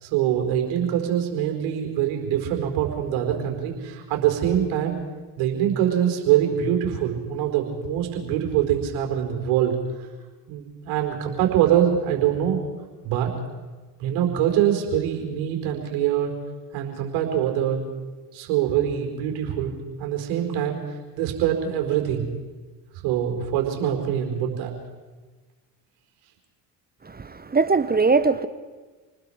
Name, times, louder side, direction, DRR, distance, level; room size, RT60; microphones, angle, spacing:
voice 1, 0.0-5.0 5.4-9.7 10.5-12.6 13.0-13.3 14.0-16.3 16.7-17.8 18.3-20.8 21.2-22.3 23.0-24.7, right 10 dB, 70° right, 3 dB, 4.6 m, -24 dB
voice 2, 27.0-28.5, right 4 dB, 20° right, 13 dB, 1.2 m, -21 dB
28.5 x 20.0 x 5.0 m, 1.3 s
hypercardioid pair, 70°, 49 cm